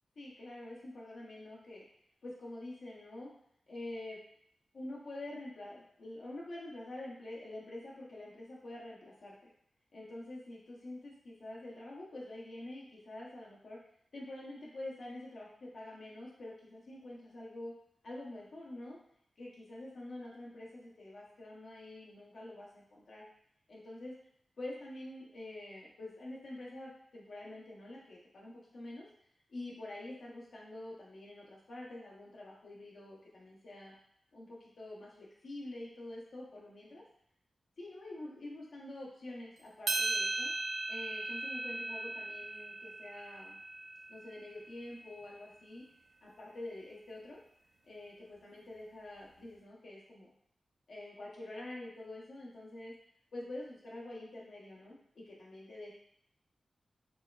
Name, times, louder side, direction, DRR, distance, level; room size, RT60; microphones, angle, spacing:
voice 1, 0.2-1.8 2.2-3.3 3.7-4.2 4.7-9.3 9.9-13.8 14.1-17.7 18.0-19.0 19.4-23.2 23.7-24.1 24.6-29.1 29.5-33.9 34.3-37.0 37.8-40.5 40.9-43.6 44.1-45.8 46.2-47.4 47.8-50.3 50.9-52.9 53.3-55.9, left 1 dB, 70° left, -4 dB, 0.7 m, -46 dB
sound 1, 39.9-44.3, right 2 dB, 75° right, 0.4 m, -37 dB
4.6 x 3.1 x 2.2 m, 0.69 s
wide cardioid pair, 135°, 0 cm